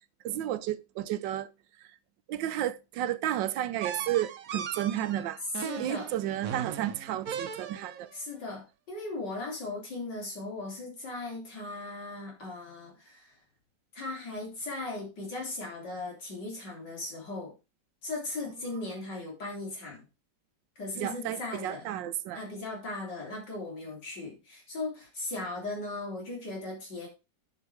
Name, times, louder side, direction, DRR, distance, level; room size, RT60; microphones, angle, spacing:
voice 1, 0.2-1.5 2.3-5.4 5.8-8.1 21.0-22.4, right 12 dB, 90° right, 1.4 m, -32 dB
sound 1, 3.8-8.1, right 7 dB, 55° right, 1.2 m, -38 dB
voice 2, 5.6-6.1 8.1-13.4 13.9-17.5 18.0-20.1 20.8-21.9 22.3-27.1, left 2 dB, 70° left, 4.3 m, -38 dB
10.0 x 5.5 x 4.7 m
omnidirectional pair, 1.9 m